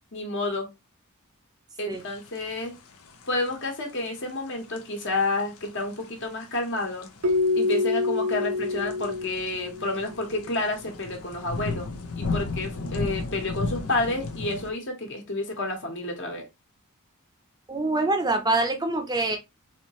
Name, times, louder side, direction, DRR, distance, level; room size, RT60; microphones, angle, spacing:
voice 1, 0.1-0.7 1.8-2.8 3.3-7.1 7.6-11.9 12.2-16.5, left 2 dB, 55° left, 1.3 m, -30 dB
sound 1, 2.0-14.7, left 3 dB, 85° left, 0.7 m, -35 dB
Keyboard (musical), 7.2-10.1, left 3 dB, 70° right, 0.6 m, -26 dB
voice 2, 17.7-19.4, right 2 dB, 20° right, 0.6 m, -25 dB
4.3 x 2.8 x 3.0 m
head